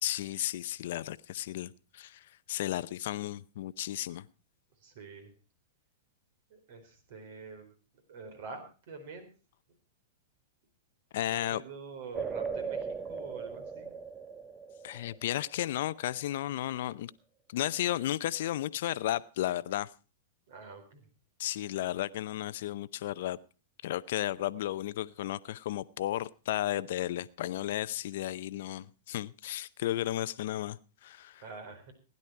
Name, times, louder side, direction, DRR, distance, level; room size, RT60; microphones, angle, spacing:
voice 1, 0.0-4.3 11.1-11.6 14.8-17.1 17.5-19.9 21.4-23.4 23.8-31.5, left 13 dB, 65° left, 0.6 m, -34 dB
voice 2, 4.8-5.3 6.5-7.7 8.1-8.6 8.9-9.3 11.3-13.9 20.5-21.0 31.4-31.9, right 4 dB, 60° right, 4.1 m, -46 dB
sound 1, 12.1-15.7, right 5 dB, 20° right, 0.7 m, -38 dB
16.5 x 10.5 x 4.5 m
hypercardioid pair, 115°, 0 cm